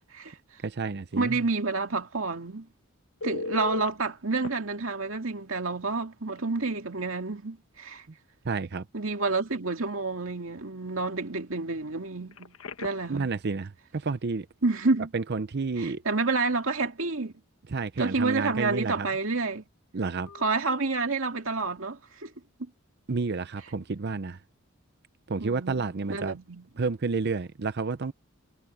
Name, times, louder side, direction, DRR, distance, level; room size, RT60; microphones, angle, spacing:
voice 1, 0.6-1.4 8.4-8.9 13.1-14.5 15.1-16.0 17.7-19.1 19.9-20.3 23.1-24.4 25.3-26.4 26.8-28.1, right 4 dB, 55° right, 0.6 m, -30 dB
voice 2, 1.2-2.7 3.2-8.1 8.9-13.3 14.6-15.1 15.8-17.3 18.0-19.6 20.4-22.3 25.4-26.6, right 3 dB, 70° right, 2.4 m, -29 dB
Telephone, 3.2-3.9 4.4-4.5 6.3-6.4 6.8-7.0 12.3-13.2 20.3-20.5, left 2 dB, 85° left, 1.1 m, -37 dB
head